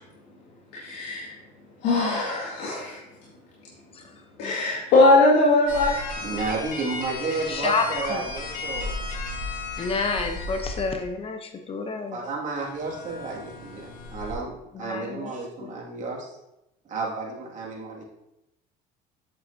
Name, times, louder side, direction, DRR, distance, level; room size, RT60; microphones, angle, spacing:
voice 1, 0.7-1.3 1.8-3.0 4.4-5.9, left 2 dB, 75° left, -7 dB, 2.1 m, -20 dB
sound 1, 5.7-11.0 12.5-14.3, left 3 dB, 55° left, 1.7 m, -34 dB
voice 2, 6.2-8.9 12.1-16.3 16.9-18.1, right 3 dB, 45° right, -2 dB, 2.2 m, -32 dB
voice 3, 7.5-8.3 9.8-12.2 14.7-15.3 15.6-15.7, left 4 dB, 35° left, 5 dB, 0.8 m, -29 dB
8.0 x 7.1 x 2.8 m, 0.88 s
cardioid pair, 115°, 18 cm